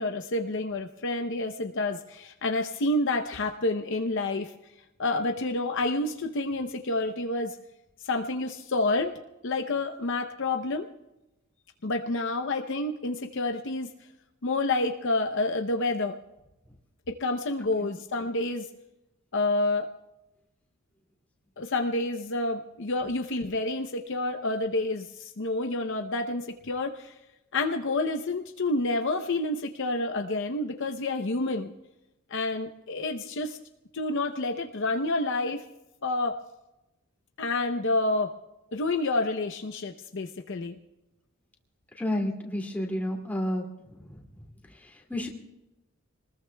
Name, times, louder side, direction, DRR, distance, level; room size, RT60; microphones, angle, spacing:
voice 1, 0.0-4.5 5.0-7.6 8.0-9.1 9.4-10.9 11.8-13.9 14.4-16.2 17.1-18.7 19.3-19.9 21.6-27.1 27.5-31.7 32.3-33.6 33.9-35.6 36.0-36.4 37.4-38.3 38.7-40.8, left 2 dB, 55° left, 6 dB, 0.7 m, -29 dB
voice 2, 41.9-43.7 44.0-44.2 44.8-45.3, left 1 dB, 5° left, 0 dB, 2.4 m, -31 dB
26.0 x 20.0 x 2.3 m, 0.96 s
head